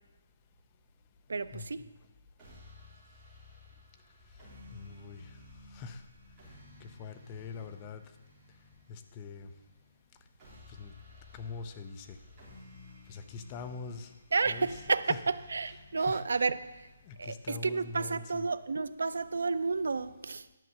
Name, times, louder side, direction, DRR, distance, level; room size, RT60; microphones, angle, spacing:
voice 1, 1.3-1.8 14.3-16.6 17.2-20.5, right 4 dB, 75° right, 0.5 m, -31 dB
sound 1, 2.4-18.4, left 2 dB, 15° right, 3.4 m, -55 dB
voice 2, 4.7-5.4 5.7-6.0 6.8-8.0 8.9-9.5 10.7-10.9 11.3-12.2 13.1-14.1 14.5-14.7 15.1-15.2 16.0-16.2 17.1-18.5, left 5 dB, 15° left, 0.4 m, -43 dB
10.5 x 5.5 x 7.5 m
hypercardioid pair, 180°, 0 cm